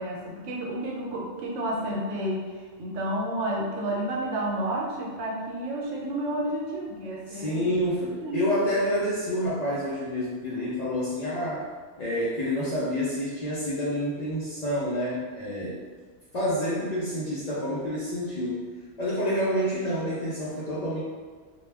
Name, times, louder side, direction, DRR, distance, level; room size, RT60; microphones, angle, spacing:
voice 1, 0.0-2.5 2.8-7.6 8.2-8.5, right 1 dB, 85° right, -3 dB, 1.0 m, -30 dB
voice 2, 7.3-11.7 12.0-15.8 16.3-18.6 19.0-21.0, equal, 55° left, -8 dB, 0.4 m, -28 dB
2.2 x 2.2 x 3.2 m, 1.5 s
omnidirectional pair, 1.3 m